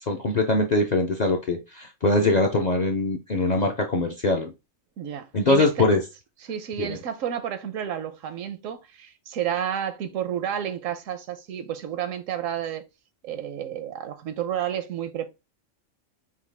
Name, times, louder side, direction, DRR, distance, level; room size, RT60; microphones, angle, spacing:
voice 1, 0.1-4.5 5.3-6.0 6.8-7.0, left 2 dB, 50° left, 0.5 m, -22 dB
voice 2, 5.0-5.8 6.4-12.8 13.2-15.3, right 9 dB, 85° right, 1.0 m, -31 dB
5.5 x 2.3 x 3.2 m
omnidirectional pair, 1.3 m